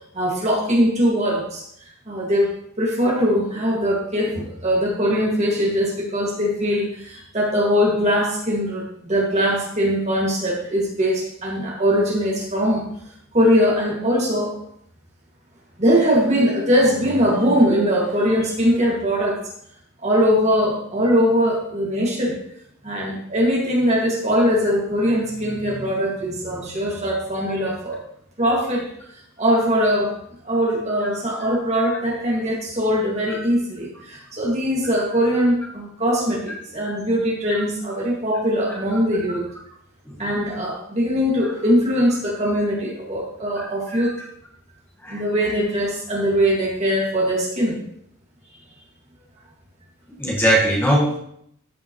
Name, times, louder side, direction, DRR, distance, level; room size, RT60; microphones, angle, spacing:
voice 1, 0.1-1.7 2.1-12.8 13.3-14.5 15.8-19.4 20.0-22.4 22.8-28.0 28.4-28.9 29.4-30.1 30.4-39.5 40.2-44.1 45.1-47.8, equal, 30° right, -2 dB, 2.0 m, -21 dB
voice 2, 43.5-44.0 45.0-45.2 50.2-51.2, right 1 dB, 10° left, -3 dB, 1.5 m, -21 dB
14.0 x 5.4 x 3.1 m, 0.71 s
head